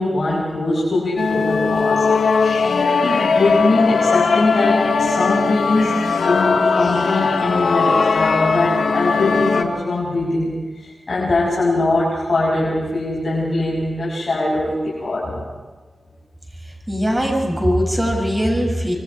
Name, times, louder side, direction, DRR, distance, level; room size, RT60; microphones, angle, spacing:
voice 1, 0.0-2.1 3.0-5.9 6.3-15.5, left 2 dB, 50° left, -6 dB, 7.4 m, -21 dB
sound 1, 1.2-9.6, left 4 dB, 75° left, 1.8 m, -18 dB
voice 2, 16.9-18.9, equal, 15° right, 2 dB, 7.6 m, -20 dB
27.5 x 23.5 x 4.9 m, 1.3 s
cardioid pair, 55°, 0 cm